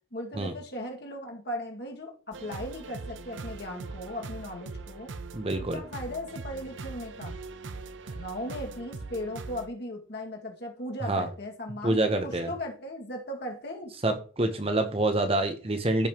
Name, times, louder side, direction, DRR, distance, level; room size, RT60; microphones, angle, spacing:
voice 1, 0.1-5.1 5.6-7.4 8.1-13.9, left 1 dB, 55° left, 1 dB, 2.1 m, -37 dB
sound 1, 2.3-9.7, right 3 dB, 75° right, 0.6 m, -41 dB
voice 2, 5.3-5.8 11.0-11.3 11.8-12.5 14.0-16.1, right 2 dB, 30° right, 7 dB, 0.9 m, -26 dB
14.0 x 5.4 x 3.0 m, 0.39 s
head